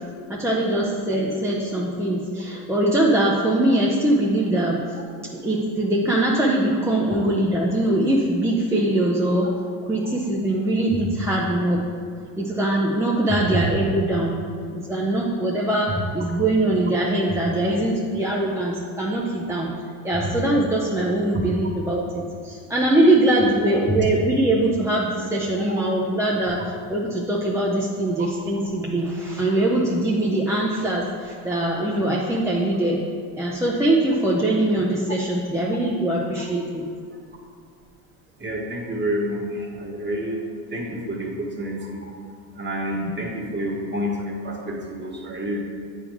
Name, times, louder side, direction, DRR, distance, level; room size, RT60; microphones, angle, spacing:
voice 1, 0.3-9.5 9.8-11.8 12.4-14.3 14.7-19.7 20.0-33.0 33.4-36.8 42.9-43.1, right 1 dB, 5° right, -4 dB, 0.7 m, -22 dB
voice 2, 38.4-40.4 40.7-42.1 42.5-45.6, equal, 25° right, -1 dB, 1.5 m, -28 dB
8.1 x 3.7 x 4.8 m, 2.2 s
supercardioid pair, 90°, 45 cm